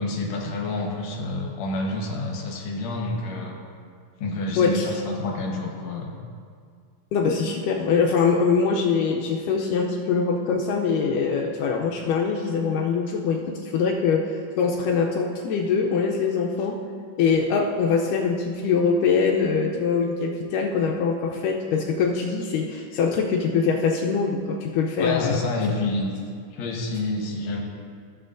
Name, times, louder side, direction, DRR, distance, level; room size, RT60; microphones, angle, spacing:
voice 1, 0.0-3.6 4.2-6.1 25.0-26.1 26.5-27.6, left 2 dB, 65° left, 0 dB, 2.1 m, -28 dB
voice 2, 4.6-4.9 7.1-16.8 17.2-25.4, left 5 dB, 80° left, 0 dB, 2.1 m, -23 dB
15.5 x 7.6 x 2.5 m, 2.1 s
omnidirectional pair, 3.8 m